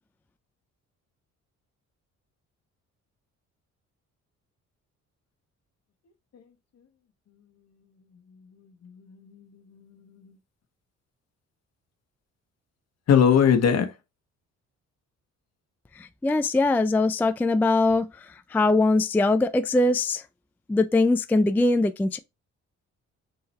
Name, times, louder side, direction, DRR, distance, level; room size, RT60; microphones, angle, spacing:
voice 1, 8.6-10.4 13.1-13.9, left 7 dB, 55° left, 1.2 m, -23 dB
voice 2, 16.0-20.2 20.7-22.2, left 2 dB, 5° left, 0.3 m, -22 dB
4.1 x 3.9 x 3.2 m
cardioid pair, 90°, 30 cm